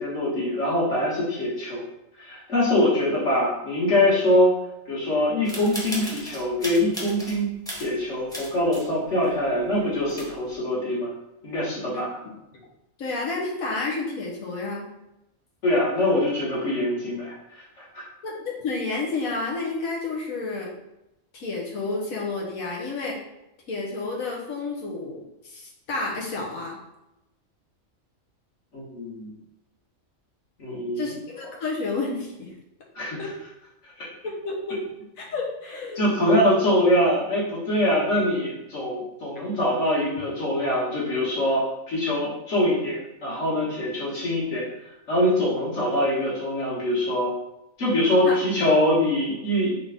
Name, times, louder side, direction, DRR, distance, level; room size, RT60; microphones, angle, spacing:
voice 1, 0.0-1.8 2.2-4.5 4.9-11.1 11.4-12.2 15.6-18.1 28.7-29.3 30.6-31.1 33.0-33.3 33.8-34.1 36.0-44.7 45.1-47.3 47.8-49.8, left 1 dB, 60° left, -7 dB, 1.9 m, -23 dB
sound 1, 5.4-7.4 7.7-8.9 9.2-9.3 9.8-9.9 10.1-10.5, equal, 5° left, 0.9 m, -36 dB
voice 2, 11.9-12.3 13.0-14.9 18.2-20.7 21.3-23.2 23.7-26.8 31.0-32.5 33.2-33.3 34.2-34.8 35.2-36.2 39.4-39.5 48.2-48.3, left 3 dB, 90° left, -2 dB, 1.4 m, -30 dB
3.9 x 3.7 x 3.5 m, 0.91 s
omnidirectional pair, 1.4 m